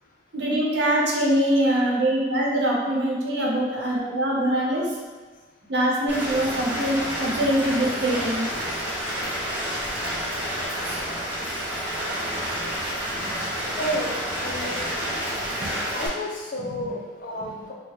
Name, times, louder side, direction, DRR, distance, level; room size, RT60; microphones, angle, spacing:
voice 1, 0.3-4.8 5.7-8.5 10.8-11.0 13.2-13.3 15.6-15.7 16.6-16.9, right 1 dB, 65° right, -3 dB, 0.8 m, -23 dB
Rain, 6.1-16.1, equal, 10° right, 0.8 m, -29 dB
voice 2, 13.8-14.1 14.4-15.0 15.9-17.7, equal, 50° left, -2 dB, 0.6 m, -31 dB
4.4 x 2.2 x 3.1 m, 1.3 s
head